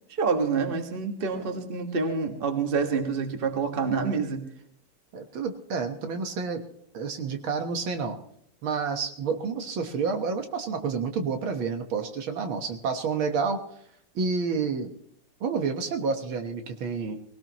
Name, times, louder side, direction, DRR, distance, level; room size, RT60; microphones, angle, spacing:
voice 1, 0.1-4.5, right 5 dB, 30° right, 5 dB, 1.6 m, -27 dB
voice 2, 5.1-6.6 6.9-8.2 8.6-13.6 14.2-14.9 15.4-17.2, right 5 dB, 70° right, 6 dB, 2.1 m, -29 dB
19.5 x 18.0 x 3.0 m, 0.69 s
omnidirectional pair, 2.4 m